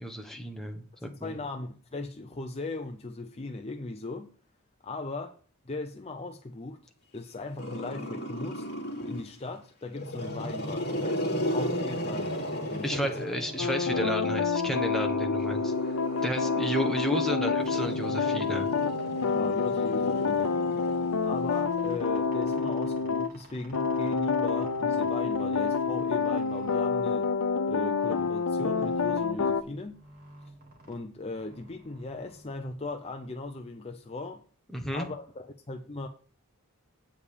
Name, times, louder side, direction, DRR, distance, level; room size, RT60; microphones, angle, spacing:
voice 1, 0.0-1.4 12.8-15.7 16.2-18.7 34.7-35.1, equal, ahead, 1.2 m, -32 dB
voice 2, 1.2-4.3 4.8-5.4 5.7-6.8 7.1-8.7 9.0-13.2 13.6-14.1 19.3-20.5 21.2-27.3 27.7-30.0 30.9-34.4 34.9-36.1, left 3 dB, 25° left, 0.6 m, -38 dB
Growling, 7.6-9.3 9.9-14.0 15.0-21.5, equal, 45° left, 2.9 m, -35 dB
sound 1, 13.6-23.3 23.7-29.6, left 5 dB, 90° left, 0.6 m, -28 dB
sound 2, 19.0-33.4, right 1 dB, 40° right, 2.0 m, -54 dB
8.3 x 5.3 x 6.9 m
head